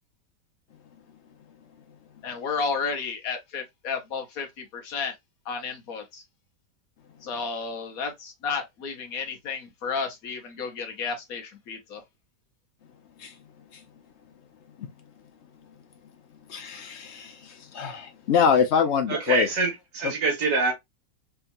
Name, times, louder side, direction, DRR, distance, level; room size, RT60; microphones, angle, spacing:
voice 1, 2.2-5.1 5.5-6.2 7.2-12.0, left 5 dB, 60° left, 1.1 m, -32 dB
voice 2, 16.5-19.5, left 6 dB, 80° left, 0.6 m, -24 dB
voice 3, 19.1-20.7, right 3 dB, 70° right, 1.6 m, -25 dB
3.5 x 2.8 x 2.5 m
omnidirectional pair, 1.9 m